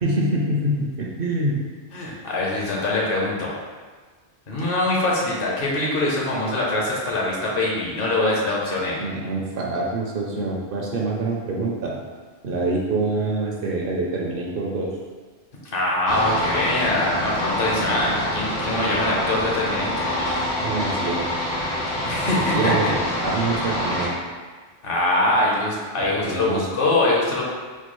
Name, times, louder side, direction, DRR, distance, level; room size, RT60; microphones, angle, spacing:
voice 1, 0.0-1.6 9.0-12.0 12.4-14.9 20.6-21.3 22.1-24.2 26.2-26.6, right 2 dB, 60° right, -2 dB, 0.7 m, -25 dB
voice 2, 1.9-3.6 4.5-9.0 15.6-20.1 22.1-22.8 24.8-27.4, left 2 dB, 60° left, -4 dB, 0.9 m, -23 dB
sound 1, 16.1-24.1, left 1 dB, 85° left, 1.2 m, -26 dB
4.4 x 2.3 x 3.0 m, 1.4 s
omnidirectional pair, 1.1 m